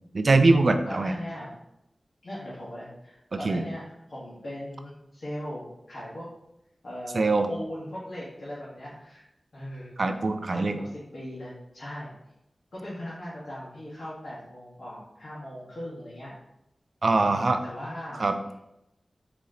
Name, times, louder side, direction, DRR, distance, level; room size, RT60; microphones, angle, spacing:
voice 1, 0.1-1.1 3.3-3.6 7.1-7.5 10.0-10.8 17.0-17.6 18.2-18.4, right 3 dB, 65° right, 8 dB, 0.4 m, -22 dB
voice 2, 0.9-1.5 2.2-6.3 6.8-9.2 9.5-10.2 10.5-12.1 12.7-16.3 17.2-18.3, left 1 dB, 80° left, -9 dB, 1.4 m, -39 dB
4.3 x 3.0 x 3.8 m, 0.83 s
wide cardioid pair, 65°, 0 cm